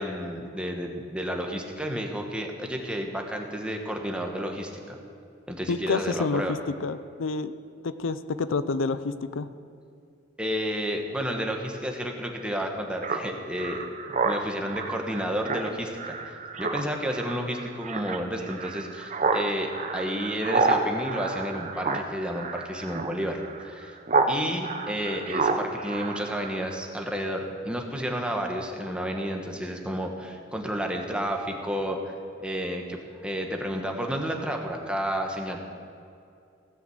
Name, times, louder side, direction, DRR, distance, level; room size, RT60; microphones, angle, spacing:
voice 1, 0.0-5.0 5.5-6.5 10.4-13.8 14.2-23.9 24.3-35.6, equal, 5° right, 2 dB, 1.2 m, -31 dB
voice 2, 5.7-7.5 7.8-9.5, left 4 dB, 85° left, 13 dB, 0.5 m, -28 dB
Speech synthesizer, 13.0-24.3 24.6-26.8, right 3 dB, 40° right, 0.8 m, -29 dB
16.0 x 6.2 x 7.9 m, 2.5 s
head